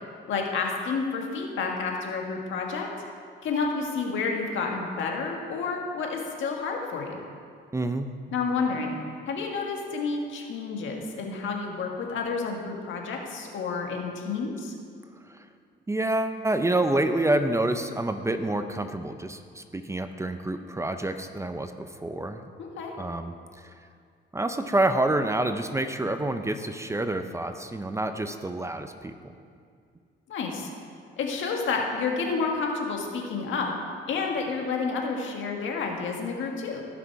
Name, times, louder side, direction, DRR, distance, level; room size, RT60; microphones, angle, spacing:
voice 1, 0.3-2.9 3.4-7.2 8.3-8.9 9.3-14.7 22.6-22.9 30.3-30.7 31.2-33.7 34.1-36.8, left 4 dB, 75° left, 1 dB, 1.7 m, -30 dB
voice 2, 7.7-8.1 15.3-15.5 15.9-22.5 23.0-23.7 24.3-29.1, right 2 dB, 15° right, 8 dB, 0.6 m, -28 dB
17.0 x 6.1 x 4.7 m, 2.2 s
cardioid pair, 90°, 20 cm